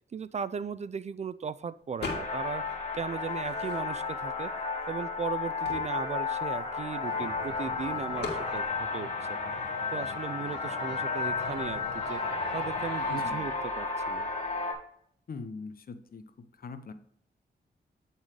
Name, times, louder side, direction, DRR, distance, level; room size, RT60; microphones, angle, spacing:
voice 1, 0.1-4.5 4.9-9.4 9.9-12.2 12.5-14.3, right 6 dB, 40° right, 16 dB, 0.4 m, -37 dB
sound 1, 2.0-2.6 2.9-4.2 4.8-4.9 5.1-7.4 8.2-8.5, left 4 dB, 70° left, 1.9 m, -40 dB
sound 2, 2.0-14.7, left 4 dB, 35° left, 2.0 m, -33 dB
sound 3, 7.0-13.3, left 4 dB, 90° left, 1.3 m, -45 dB
voice 2, 13.1-13.5 15.3-16.9, left 4 dB, 55° left, 10 dB, 0.8 m, -42 dB
8.9 x 4.0 x 4.8 m, 0.68 s
cardioid pair, 65°, 18 cm